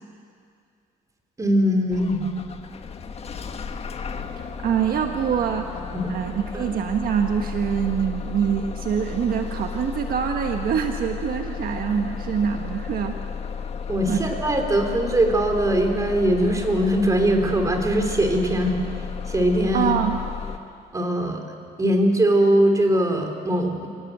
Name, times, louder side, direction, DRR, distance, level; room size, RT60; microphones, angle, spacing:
voice 1, 1.4-2.3 5.9-6.1 6.5-6.6 13.9-18.8 19.3-20.0 20.9-21.4 21.8-23.9, right 1 dB, 20° right, 3 dB, 3.7 m, -21 dB
Bus / Engine starting, 1.9-20.6, left 6 dB, 35° left, 1.6 m, -33 dB
voice 2, 4.4-5.8 6.1-13.2 14.1-14.3 19.7-20.2, right 8 dB, 60° right, 4 dB, 1.5 m, -25 dB
27.0 x 18.0 x 8.1 m, 2.3 s
cardioid pair, 110°, 17 cm